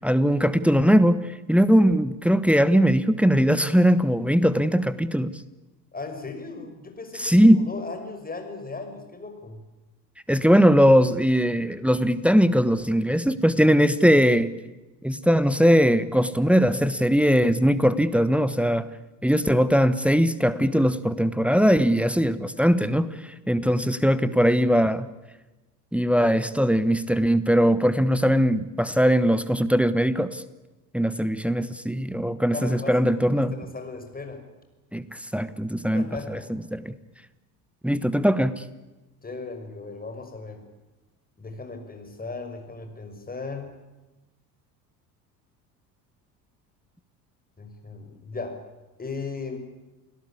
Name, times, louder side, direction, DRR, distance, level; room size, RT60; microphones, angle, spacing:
voice 1, 0.0-5.3 7.2-7.6 10.3-14.5 15.0-18.9 19.2-25.1 25.9-30.4 30.9-33.5 34.9-36.9 37.8-38.6, equal, 5° right, 14 dB, 1.2 m, -20 dB
voice 2, 5.9-9.6 23.8-24.6 32.5-33.0 33.2-34.4 35.9-36.5 39.2-40.6 41.4-43.8 47.6-48.6 49.0-49.6, left 3 dB, 20° left, 6 dB, 5.9 m, -37 dB
29.0 x 18.0 x 8.6 m, 1.1 s
figure-of-eight pair, 65°, 49 cm